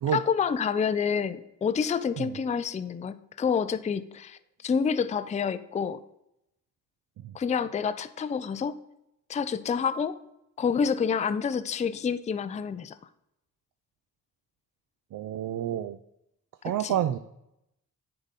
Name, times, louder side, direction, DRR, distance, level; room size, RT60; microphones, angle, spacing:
voice 1, 0.1-6.0 7.3-8.7 9.3-10.2 10.6-13.0 16.6-17.0, left 6 dB, 20° left, 13 dB, 0.4 m, -28 dB
voice 2, 15.1-16.0 16.6-17.2, right 10 dB, 50° right, 10 dB, 0.5 m, -29 dB
9.4 x 3.9 x 4.1 m, 0.83 s
supercardioid pair, 50°, 41 cm